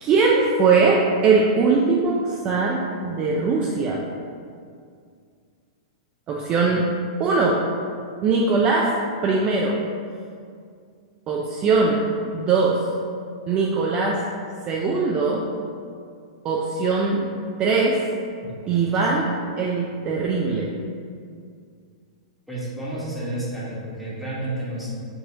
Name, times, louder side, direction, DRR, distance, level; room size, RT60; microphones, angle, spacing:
voice 1, 0.0-4.0 6.3-6.9 7.2-7.6 8.2-8.9 9.2-9.8 11.3-12.0 12.3-12.9 13.5-14.2 14.7-15.5 16.4-17.3 17.6-18.0 18.7-20.7, right 4 dB, 30° right, -2 dB, 0.4 m, -21 dB
voice 2, 18.4-19.2 22.5-24.9, right 1 dB, ahead, -9 dB, 1.2 m, -31 dB
4.8 x 2.6 x 2.7 m, 2.2 s
hypercardioid pair, 110°, 3 cm